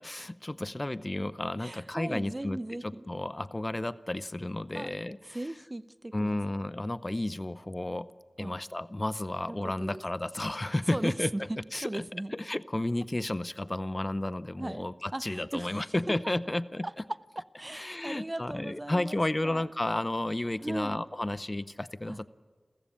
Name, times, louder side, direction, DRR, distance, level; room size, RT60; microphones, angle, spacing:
voice 1, 0.0-5.2 6.1-8.1 8.4-11.3 11.7-12.0 12.3-16.9 17.7-22.3, left 1 dB, 30° left, 16 dB, 0.6 m, -32 dB
voice 2, 1.6-3.1 4.7-4.9 5.3-6.4 8.4-8.5 9.5-10.0 10.9-12.3 14.6-16.2 16.8-16.9 17.6-19.7 20.6-21.0 22.1-22.2, right 1 dB, 30° right, 15 dB, 0.7 m, -38 dB
29.5 x 15.0 x 8.7 m, 1.5 s
wide cardioid pair, 50°, 0 cm